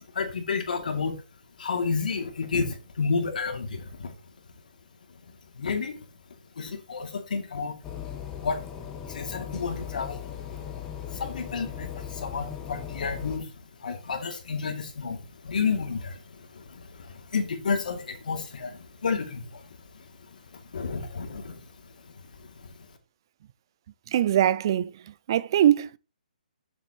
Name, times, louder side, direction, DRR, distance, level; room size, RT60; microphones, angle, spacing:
voice 1, 0.1-1.2 1.6-4.1 5.6-6.0 6.6-7.7 8.4-8.6 9.1-10.2 10.5-10.6 11.1-13.5 13.8-19.6 20.3-21.6 22.4-22.7, left 5 dB, 65° left, 2.6 m, -31 dB
sound 1, 7.8-13.4, left 9 dB, 10° left, 1.2 m, -38 dB
voice 2, 24.1-25.0 25.3-26.0, right 11 dB, 30° right, 0.4 m, -22 dB
8.2 x 7.5 x 4.2 m
hypercardioid pair, 170°, 5 cm